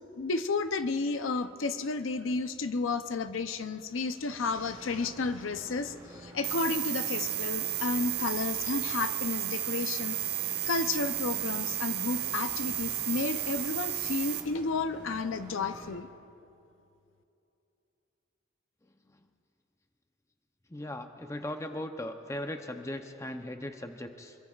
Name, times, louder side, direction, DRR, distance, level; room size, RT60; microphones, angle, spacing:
voice 1, 0.1-16.1, left 4 dB, 75° left, 9 dB, 0.6 m, -32 dB
sound 1, 4.4-16.0, right 1 dB, 20° right, 3.4 m, -49 dB
sound 2, 6.4-14.4, right 13 dB, 55° right, 1.0 m, -33 dB
voice 2, 20.7-24.4, left 1 dB, 15° left, 6 dB, 0.6 m, -38 dB
25.5 x 23.0 x 2.4 m, 2.8 s
head